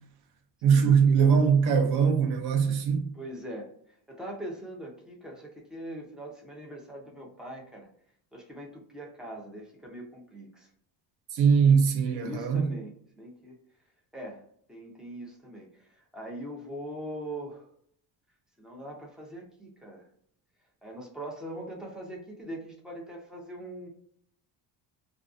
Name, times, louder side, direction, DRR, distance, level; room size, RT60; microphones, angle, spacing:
voice 1, 0.6-3.0 11.3-12.6, right 6 dB, 60° right, 0.7 m, -21 dB
voice 2, 3.1-3.7 4.1-7.9 8.3-10.7 12.1-13.6 14.1-17.7 18.6-20.0 20.8-23.9, right 1 dB, ahead, 0.5 m, -41 dB
2.5 x 2.4 x 2.4 m
cardioid pair, 140°, 43 cm